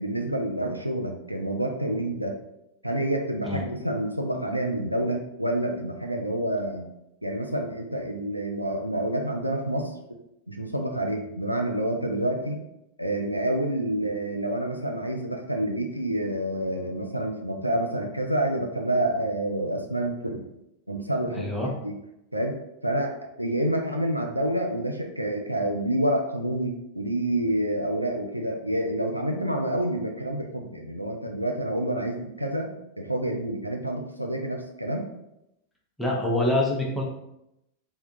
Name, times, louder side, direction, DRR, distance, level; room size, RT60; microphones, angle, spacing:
voice 1, 0.0-2.3 2.8-6.8 7.2-10.0 10.5-12.6 13.0-20.5 20.9-22.0 22.3-22.6 22.8-35.1, right 1 dB, 90° right, 2 dB, 0.3 m, -28 dB
voice 2, 21.3-21.7 36.0-37.0, left 1 dB, 5° left, -3 dB, 0.7 m, -25 dB
3.5 x 2.2 x 2.6 m, 0.84 s
figure-of-eight pair, 90°, 0 cm